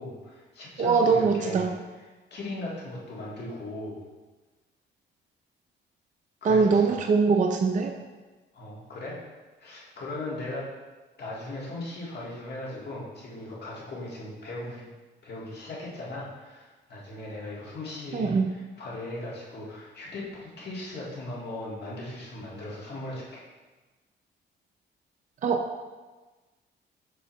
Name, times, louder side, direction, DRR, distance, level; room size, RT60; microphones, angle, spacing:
voice 1, 0.0-1.6 2.3-4.0 6.4-7.0 8.5-9.2 9.6-10.7 11.2-14.9 15.2-23.5, left 2 dB, 55° left, -4 dB, 1.9 m, -38 dB
voice 2, 0.8-1.7 6.4-7.9 18.1-18.5 25.4-25.6, right 4 dB, 40° right, 3 dB, 0.5 m, -22 dB
6.0 x 5.9 x 3.1 m, 1.2 s
cardioid pair, 90°, 20 cm